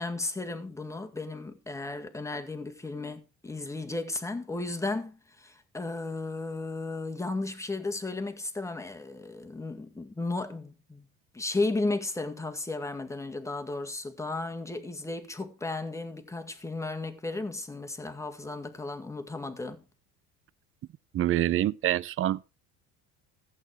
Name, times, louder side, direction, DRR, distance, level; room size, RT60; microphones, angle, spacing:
voice 1, 0.0-11.1 11.3-19.8, left 2 dB, 10° left, 1.9 m, -34 dB
voice 2, 21.1-22.4, right 13 dB, 35° right, 0.6 m, -26 dB
14.5 x 8.6 x 4.8 m
cardioid pair, 125°, 35 cm